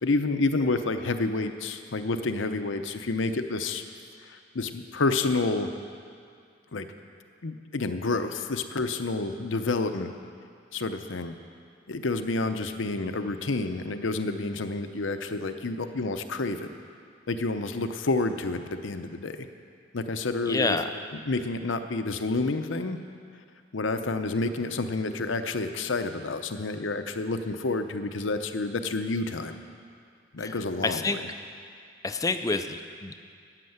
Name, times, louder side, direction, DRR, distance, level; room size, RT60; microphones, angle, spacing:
voice 1, 0.0-3.8 4.3-5.7 6.7-6.9 7.4-10.1 10.7-11.3 11.9-16.7 17.3-19.5 19.9-20.8 21.1-23.0 23.7-29.6 30.3-31.3, left 3 dB, 80° left, 8 dB, 0.8 m, -29 dB
voice 2, 20.5-20.9 30.4-30.5 30.8-31.2 32.0-33.2, left 3 dB, 20° left, 8 dB, 0.4 m, -28 dB
13.5 x 9.8 x 7.9 m, 2.3 s
head